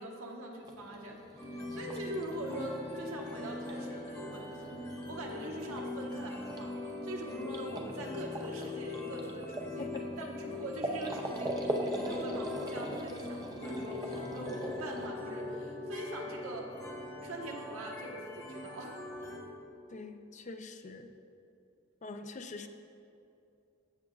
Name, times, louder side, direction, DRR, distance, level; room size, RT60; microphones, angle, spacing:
voice 1, 0.0-4.6 5.1-6.7 7.0-9.9 10.2-11.6 11.9-16.7 17.2-19.0, right 1 dB, 80° right, 0 dB, 1.2 m, -42 dB
sound 1, 0.6-15.1, right 1 dB, 20° right, 0.5 m, -42 dB
sound 2, 1.4-19.4, left 2 dB, 15° left, 1.0 m, -41 dB
voice 2, 9.8-10.3 19.9-21.1 22.0-22.7, left 3 dB, 35° left, 7 dB, 0.4 m, -44 dB
13.5 x 7.5 x 2.4 m, 2.7 s
head